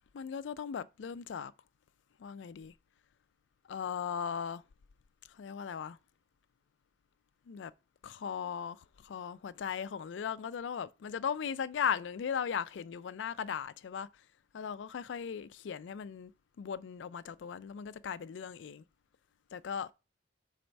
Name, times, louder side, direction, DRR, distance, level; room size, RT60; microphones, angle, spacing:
voice 1, 0.0-1.5 2.2-2.7 3.7-4.6 5.3-6.0 7.5-7.7 8.0-14.1 14.5-16.3 16.6-18.8 19.5-19.9, left 7 dB, 75° left, 0.4 m, -37 dB
4.5 x 4.1 x 5.2 m
head